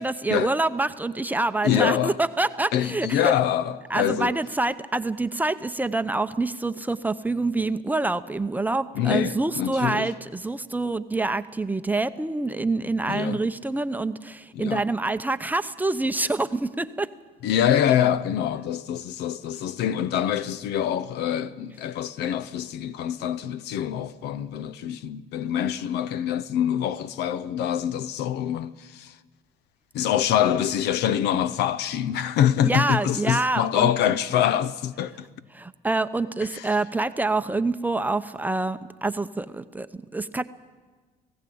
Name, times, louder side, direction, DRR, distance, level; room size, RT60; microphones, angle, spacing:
voice 1, 0.0-3.3 3.9-17.1 32.6-33.9 35.5-40.4, right 2 dB, 10° right, 0.7 m, -26 dB
voice 2, 1.6-2.2 2.7-4.3 8.9-10.1 13.1-13.4 14.6-14.8 17.4-29.1 29.9-35.3 36.5-36.6, left 10 dB, 80° left, 0.8 m, -25 dB
18.5 x 16.5 x 8.6 m
cardioid pair, 110°, 17 cm